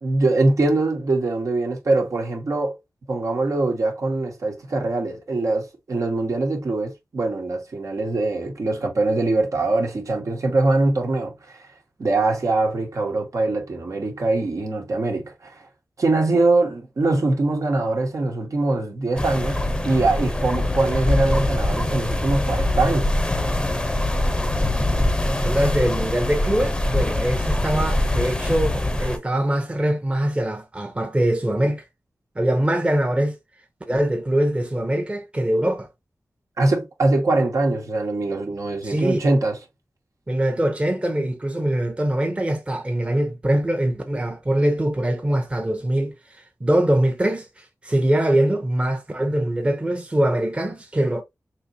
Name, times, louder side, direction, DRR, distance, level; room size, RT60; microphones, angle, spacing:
voice 1, 0.0-2.8 3.1-11.7 12.0-15.7 16.0-23.1 36.6-39.6, right 2 dB, 65° right, 1.3 m, -22 dB
sound 1, 19.2-29.2, left 1 dB, 15° left, 0.7 m, -23 dB
voice 2, 25.4-31.8 32.4-33.4 33.9-35.9 38.8-39.2 40.3-46.1 46.6-51.2, right 1 dB, 20° right, 0.9 m, -23 dB
4.2 x 3.0 x 2.7 m
wide cardioid pair, 85°, 6 cm